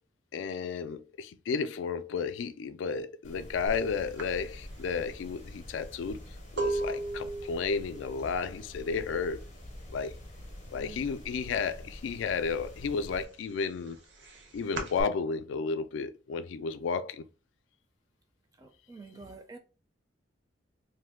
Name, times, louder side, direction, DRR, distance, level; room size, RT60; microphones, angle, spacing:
voice 1, 0.3-6.2 6.5-9.5 9.9-10.1 10.7-14.0 14.5-17.2, left 5 dB, 90° left, 0.3 m, -33 dB
sound 1, 3.2-13.2, left 1 dB, 40° left, 0.6 m, -46 dB
sound 2, 3.7-3.8 4.2-9.9 10.1-10.6 10.9-12.1 12.4-15.0, right 2 dB, 75° right, 0.7 m, -37 dB
voice 2, 10.7-11.1 18.6-19.6, right 3 dB, 20° right, 0.4 m, -48 dB
2.6 x 2.2 x 3.5 m
head